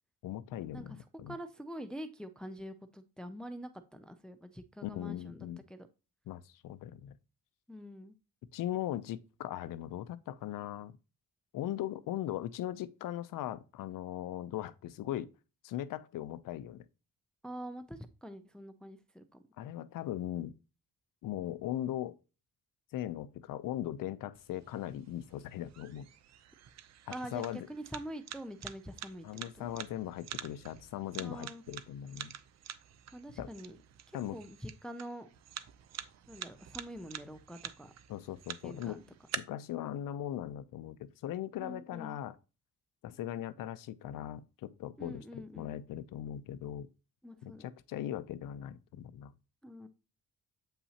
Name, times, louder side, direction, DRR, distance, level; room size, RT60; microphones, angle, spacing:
voice 1, 0.2-1.3 4.8-5.6 6.3-7.1 8.5-10.9 11.5-15.3 15.6-16.9 19.6-20.5 21.2-22.2 22.9-26.1 27.1-27.7 29.2-32.3 33.4-33.5 34.1-34.4 38.1-39.0 39.4-42.3 43.0-46.9 47.4-49.3, left 12 dB, 85° left, 0.6 m, -39 dB
voice 2, 0.7-5.9 7.7-8.2 17.4-19.2 27.1-29.3 29.5-29.7 31.2-31.6 33.1-33.8 34.3-35.3 36.3-37.9 38.6-39.0 41.6-42.2 45.0-45.8 47.2-47.7 49.6-49.9, equal, 5° left, 0.4 m, -45 dB
sound 1, 24.4-39.4, right 10 dB, 55° right, 0.6 m, -47 dB
8.2 x 5.6 x 2.8 m
cardioid pair, 170°, 32 cm